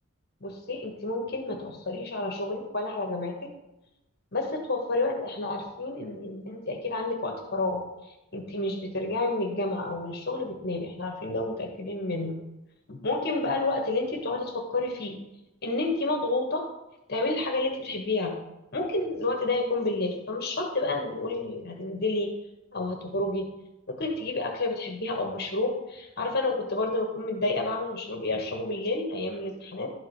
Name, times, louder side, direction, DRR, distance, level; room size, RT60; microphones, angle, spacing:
voice 1, 0.4-3.5 4.3-7.8 8.3-12.4 12.9-15.2 15.6-16.7 17.1-18.3 18.7-22.3 22.7-23.5 23.9-29.9, left 2 dB, 50° left, 2 dB, 1.3 m, -30 dB
11.5 x 4.8 x 4.7 m, 0.94 s
head